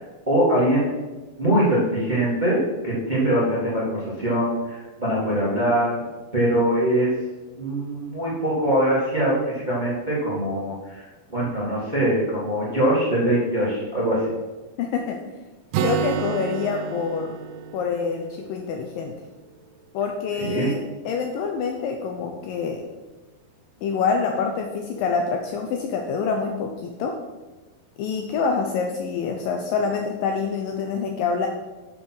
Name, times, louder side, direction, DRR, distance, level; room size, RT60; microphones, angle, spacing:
voice 1, 0.3-0.9 1.4-6.0 6.3-7.1 7.5-11.0 11.3-14.3 20.4-20.7, right 1 dB, 30° right, -6 dB, 0.8 m, -22 dB
voice 2, 14.8-15.2 15.8-17.4 17.7-19.1 19.9-22.8 23.8-27.2 28.0-31.5, left 5 dB, 85° left, 3 dB, 2.0 m, -26 dB
Acoustic guitar, 15.7-19.5, right 9 dB, 85° right, 2.2 m, -30 dB
7.3 x 6.1 x 6.2 m, 1.2 s
omnidirectional pair, 4.8 m